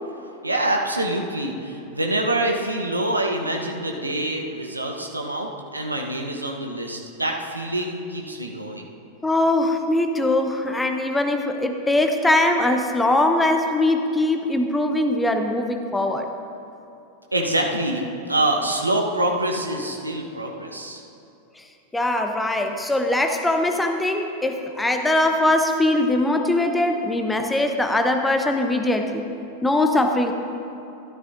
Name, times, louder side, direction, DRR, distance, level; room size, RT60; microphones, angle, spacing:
voice 1, 0.4-8.9 17.3-21.0, right 1 dB, 85° right, 1 dB, 1.0 m, -25 dB
voice 2, 9.2-16.3 21.9-29.3 29.6-30.3, left 1 dB, 10° left, 5 dB, 0.8 m, -21 dB
12.5 x 12.5 x 2.6 m, 2.8 s
figure-of-eight pair, 90°, 0 cm